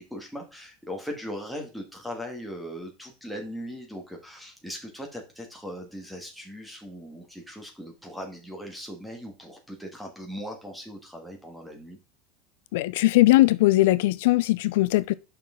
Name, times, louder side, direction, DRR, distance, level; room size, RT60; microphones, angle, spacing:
voice 1, 0.0-12.0, equal, ahead, 1.5 m, -39 dB
voice 2, 12.7-15.1, left 18 dB, 80° left, 0.4 m, -20 dB
6.7 x 5.7 x 3.7 m
cardioid pair, 170°, 0 cm